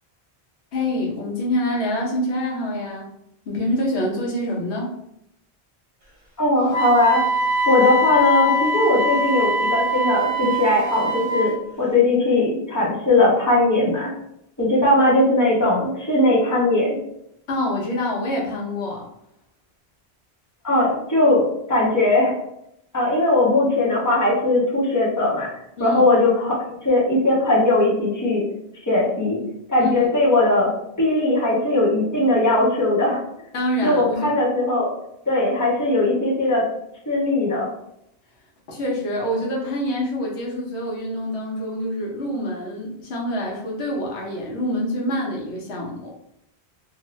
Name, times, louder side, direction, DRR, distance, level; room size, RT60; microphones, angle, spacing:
voice 1, 0.7-3.1 3.5-4.9 17.5-19.1 25.8-26.0 29.8-30.0 33.5-34.3 38.7-46.1, left 1 dB, 90° left, -2 dB, 1.1 m, -26 dB
voice 2, 6.4-7.2 7.7-14.1 14.6-17.0 20.6-22.3 22.9-25.5 25.8-28.4 28.9-29.4 29.7-33.2 33.8-34.9 35.3-36.7 37.1-37.7, left 2 dB, 15° left, -7 dB, 1.0 m, -19 dB
Wind instrument woodwind instrument, 6.7-11.5, equal, 65° right, 1.1 m, -22 dB
2.8 x 2.5 x 3.1 m, 0.77 s
omnidirectional pair, 1.1 m